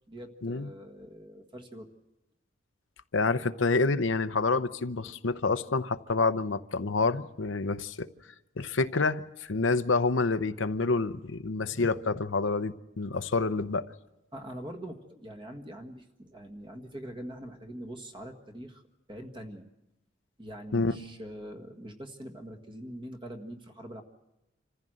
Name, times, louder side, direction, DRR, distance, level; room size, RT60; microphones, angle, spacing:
voice 1, 0.1-1.9 14.3-18.8 19.1-19.7 20.4-24.0, right 1 dB, 25° right, 1.7 m, -43 dB
voice 2, 3.1-8.1 8.6-13.8 20.7-21.0, left 3 dB, 85° left, 0.8 m, -28 dB
26.5 x 15.0 x 7.8 m
head